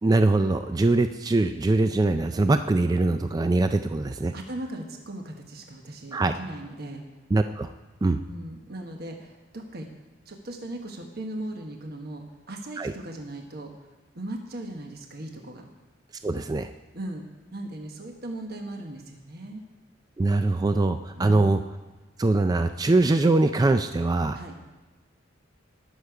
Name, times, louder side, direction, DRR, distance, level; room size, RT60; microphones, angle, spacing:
voice 1, 0.0-4.3 6.1-6.3 7.3-7.7 8.0-8.2 12.8-12.9 16.2-16.7 20.2-21.6 22.2-24.4, right 2 dB, 20° right, 9 dB, 0.3 m, -22 dB
voice 2, 4.3-7.0 8.2-9.9 10.2-13.9 14.1-15.7 16.9-17.2 17.5-19.6 24.3-24.6, right 1 dB, 50° right, 3 dB, 1.2 m, -38 dB
19.5 x 6.7 x 4.8 m, 1.2 s
head